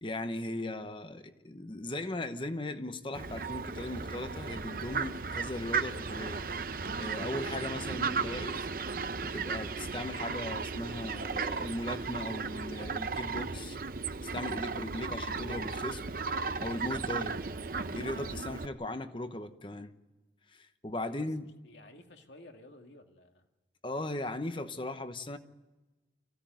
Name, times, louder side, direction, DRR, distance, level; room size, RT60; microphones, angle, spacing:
voice 1, 0.0-6.4 7.0-8.7 9.2-13.8 14.2-16.0 16.6-17.4 17.9-19.9 20.5-21.5 23.8-25.4, left 1 dB, 25° left, 1.0 m, -38 dB
Fowl, 3.1-18.7, right 4 dB, 50° right, 0.7 m, -35 dB
voice 2, 21.6-23.5, left 1 dB, 75° left, 2.3 m, -53 dB
25.0 x 16.0 x 9.2 m
head